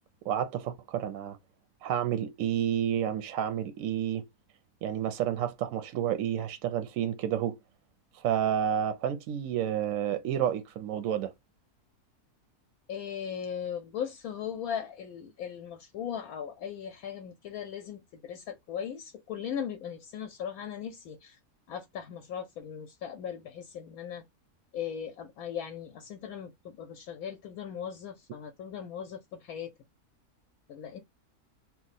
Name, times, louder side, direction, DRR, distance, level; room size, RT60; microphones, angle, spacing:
voice 1, 0.2-1.4 1.8-4.2 4.8-7.6 8.2-11.3, right 10 dB, 70° right, 0.8 m, -30 dB
voice 2, 12.9-21.4 21.7-24.2 24.7-29.7 30.7-31.0, left 8 dB, 75° left, 1.0 m, -38 dB
2.9 x 2.1 x 4.0 m
omnidirectional pair, 1.6 m